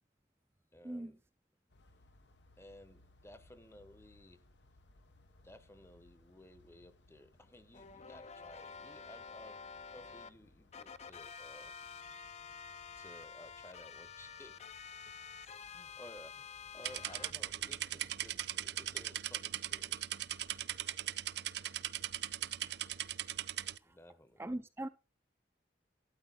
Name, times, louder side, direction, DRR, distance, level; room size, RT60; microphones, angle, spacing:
voice 1, 0.7-1.2 2.6-4.5 5.4-11.7 13.0-14.8 15.4-20.2 23.8-24.4, left 1 dB, 15° left, 0.9 m, -57 dB
sound 1, 1.7-19.1, left 2 dB, 80° left, 1.1 m, -66 dB
sound 2, 7.7-10.3 10.7-17.3, left 6 dB, 40° left, 0.6 m, -49 dB
sound 3, 16.8-23.8, right 12 dB, 65° right, 0.5 m, -39 dB
voice 2, 24.4-24.9, right 1 dB, 15° right, 0.5 m, -40 dB
12.5 x 9.7 x 3.9 m
head